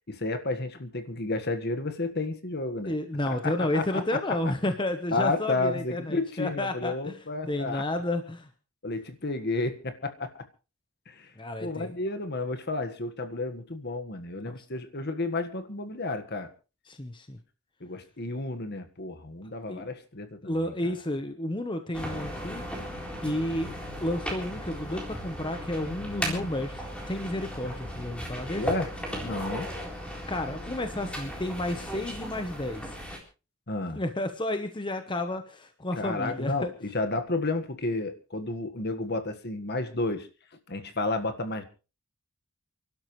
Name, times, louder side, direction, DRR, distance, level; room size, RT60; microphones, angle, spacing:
voice 1, 0.1-2.9 3.3-4.0 5.1-7.8 8.8-10.3 11.1-11.3 11.6-16.5 17.8-20.9 26.1-26.5 28.5-28.9 29.2-29.7 33.7-34.0 35.9-40.3 40.7-41.6, left 2 dB, 50° left, 9 dB, 1.6 m, -31 dB
voice 2, 2.8-7.2 7.5-8.5 11.4-11.9 14.4-14.7 16.9-17.4 19.7-19.8 20.4-22.6 23.2-23.7 24.0-28.6 30.3-33.0 34.0-36.7, left 1 dB, 20° left, 7 dB, 1.0 m, -31 dB
sound 1, 21.9-33.2, equal, 5° left, 3.8 m, -36 dB
29.0 x 12.0 x 3.2 m, 0.33 s
head